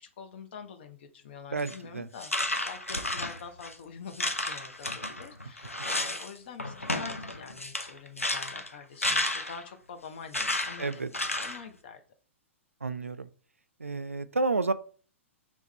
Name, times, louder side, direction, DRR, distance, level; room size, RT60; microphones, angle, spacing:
voice 1, 0.0-12.0, left 6 dB, 50° left, 0.7 m, -46 dB
voice 2, 1.5-2.1 10.8-11.1 12.8-13.3 13.8-14.7, right 3 dB, 85° right, 0.4 m, -30 dB
sound 1, 1.6-1.8 2.2-3.7 4.1-6.3 6.6-9.7 10.3-11.6, left 2 dB, 90° left, 0.6 m, -32 dB
3.5 x 3.2 x 4.0 m
figure-of-eight pair, 110°, 7 cm